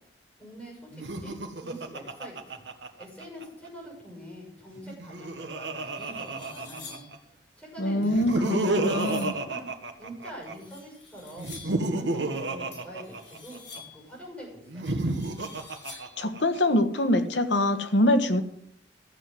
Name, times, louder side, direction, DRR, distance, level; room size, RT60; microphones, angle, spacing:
voice 1, 0.4-2.6 3.0-7.0 7.6-9.7 10.0-15.0, equal, 5° left, -2 dB, 6.4 m, -44 dB
Laughter, 0.9-3.4 4.8-7.2 8.0-10.5 11.4-13.8 14.7-16.6, right 2 dB, 75° right, 1.6 m, -31 dB
sound 1, 5.3-5.4 5.8-7.2 8.0-9.4 10.4-11.9 12.7-14.1 14.8-16.3, left 4 dB, 70° left, 5.6 m, -48 dB
voice 2, 7.8-9.3 16.2-18.4, left 1 dB, 85° left, 9 dB, 1.5 m, -24 dB
14.0 x 7.8 x 7.7 m, 0.68 s
head